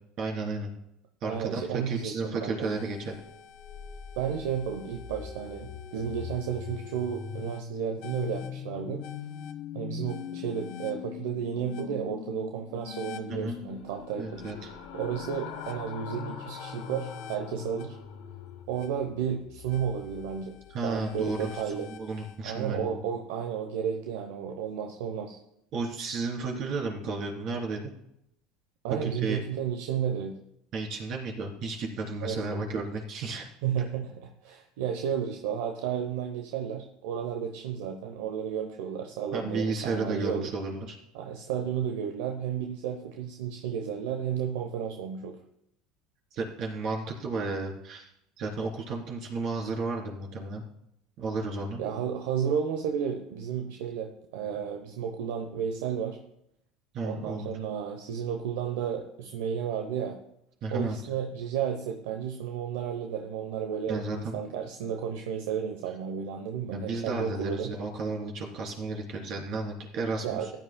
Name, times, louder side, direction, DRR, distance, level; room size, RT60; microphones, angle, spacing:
voice 1, 0.2-0.7 1.2-3.2 13.3-13.6 14.2-14.7 20.7-23.0 25.7-27.9 29.0-29.4 30.7-33.5 39.3-40.9 46.3-48.1 48.4-50.6 51.2-51.8 56.9-57.5 60.6-61.0 63.9-64.4 66.7-70.5, right 3 dB, 55° right, 0 dB, 3.2 m, -33 dB
voice 2, 1.2-2.7 4.2-9.0 9.7-14.4 14.9-18.0 18.7-20.6 20.8-21.9 22.4-25.4 28.8-30.3 32.2-32.4 33.6-40.5 41.1-45.4 51.8-56.2 57.0-60.2 60.7-67.7 70.2-70.5, right 8 dB, 80° right, 4 dB, 0.8 m, -32 dB
sound 1, 2.6-22.4, left 7 dB, 60° left, 1.0 m, -42 dB
sound 2, 13.5-18.6, left 6 dB, 80° left, 1.5 m, -45 dB
15.5 x 10.5 x 2.2 m, 0.78 s
supercardioid pair, 95°, 0 cm